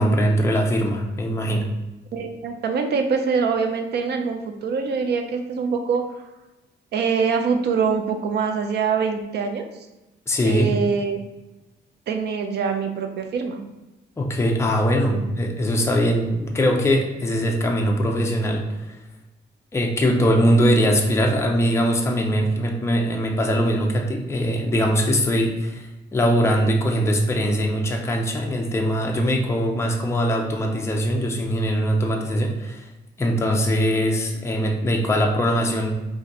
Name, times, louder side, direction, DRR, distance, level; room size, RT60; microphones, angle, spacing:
voice 1, 0.0-1.7 10.3-10.7 14.2-19.0 19.7-25.8 26.1-32.9 33.2-35.9, equal, 15° left, 1 dB, 0.4 m, -21 dB
voice 2, 2.1-6.2 6.9-9.7 10.4-11.2 12.1-13.6 15.1-15.3, right 5 dB, 65° right, 6 dB, 0.5 m, -24 dB
2.6 x 2.4 x 4.0 m, 1.0 s
cardioid pair, 130°, 19 cm